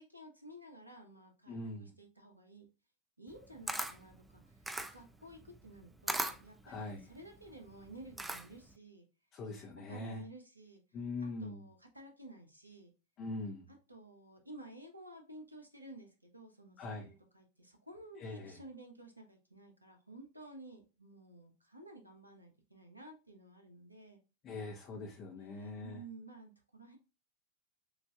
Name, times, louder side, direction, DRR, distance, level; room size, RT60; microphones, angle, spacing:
voice 1, 0.0-2.7 3.2-9.1 9.9-10.8 11.2-12.9 13.9-24.2 25.4-27.0, right 2 dB, 85° right, 4 dB, 0.9 m, -53 dB
voice 2, 1.5-1.9 6.6-7.1 9.3-10.2 10.9-11.6 13.2-13.7 16.8-17.1 18.2-18.6 24.4-26.0, left 2 dB, 30° left, 0 dB, 0.7 m, -42 dB
Camera, 3.3-8.7, right 2 dB, 5° right, 0.4 m, -40 dB
6.4 x 2.6 x 2.3 m, 0.31 s
figure-of-eight pair, 90°, 0 cm